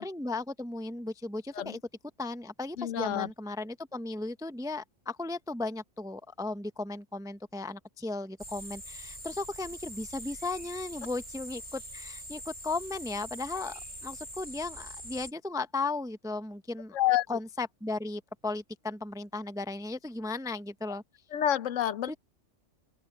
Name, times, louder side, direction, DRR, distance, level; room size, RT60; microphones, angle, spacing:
voice 1, 0.0-1.8 2.2-17.0 17.3-21.0 22.1-22.2, left 3 dB, 5° right, 0.4 m, -36 dB
voice 2, 2.8-3.3 16.9-17.3 21.3-22.2, left 11 dB, 85° left, 1.1 m, -28 dB
sound 1, 8.4-15.3, equal, 35° right, 4.5 m, -44 dB
open air
omnidirectional pair, 1.3 m